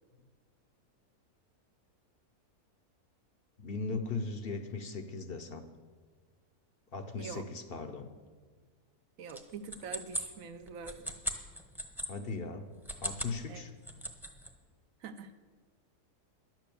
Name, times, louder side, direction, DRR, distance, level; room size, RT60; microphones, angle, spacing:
voice 1, 3.6-5.6 6.9-8.1 12.1-12.7 13.0-13.7, left 3 dB, 50° left, 8 dB, 0.8 m, -38 dB
voice 2, 7.2-7.5 9.2-11.1 13.5-13.6 15.0-15.3, right 5 dB, 65° right, 9 dB, 1.0 m, -44 dB
sound 1, 9.3-12.1 12.7-13.4 13.7-14.5, equal, ahead, 0.8 m, -38 dB
11.0 x 9.1 x 6.9 m, 1.5 s
omnidirectional pair, 1.6 m